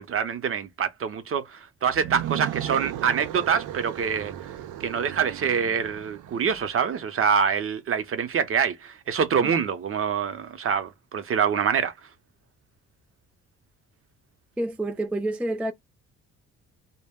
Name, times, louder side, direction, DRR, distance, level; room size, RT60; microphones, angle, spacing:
voice 1, 0.0-1.5 1.8-4.3 4.8-11.9, right 7 dB, 45° right, 0.6 m, -25 dB
sound 1, 1.9-6.9, right 12 dB, 85° right, 0.5 m, -36 dB
voice 2, 14.6-15.7, right 1 dB, 5° right, 0.3 m, -28 dB
2.1 x 2.1 x 3.5 m
cardioid pair, 90°, 30 cm